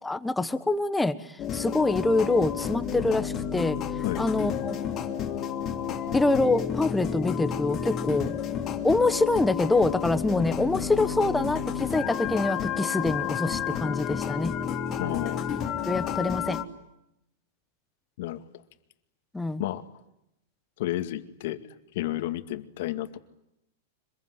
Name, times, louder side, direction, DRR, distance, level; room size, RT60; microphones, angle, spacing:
voice 1, 0.0-3.8 4.2-4.8 6.1-8.3 8.8-14.5 15.9-16.6 19.3-19.6, left 2 dB, 5° left, 12 dB, 1.2 m, -25 dB
sound 1, 1.4-16.6, left 8 dB, 25° left, 2.9 m, -31 dB
voice 2, 15.0-15.5 18.2-18.4 19.6-19.8 20.8-21.6 21.9-23.2, left 14 dB, 60° left, 9 dB, 2.1 m, -31 dB
26.0 x 22.0 x 9.6 m, 0.83 s
supercardioid pair, 145°, 0 cm